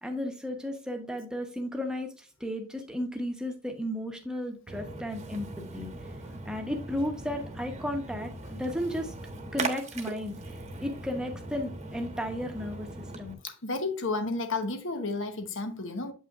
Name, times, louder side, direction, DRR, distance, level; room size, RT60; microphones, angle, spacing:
voice 1, 0.0-5.9 6.4-9.1 9.5-13.4, left 1 dB, 5° right, 1.0 m, -34 dB
Splash splatter, 4.7-13.3, right 2 dB, 30° right, 1.1 m, -40 dB
voice 2, 13.4-16.1, left 3 dB, 60° left, 1.1 m, -32 dB
8.2 x 5.7 x 2.5 m
head